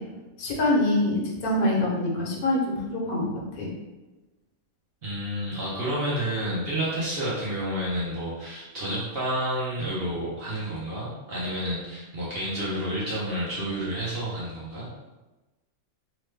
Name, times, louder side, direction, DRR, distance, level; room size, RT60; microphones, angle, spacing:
voice 1, 0.4-3.2 3.5-3.7, left 1 dB, 75° left, -2 dB, 1.1 m, -25 dB
voice 2, 5.0-14.9, right 1 dB, 50° right, -7 dB, 0.8 m, -30 dB
3.0 x 2.1 x 3.3 m, 1.1 s
omnidirectional pair, 1.5 m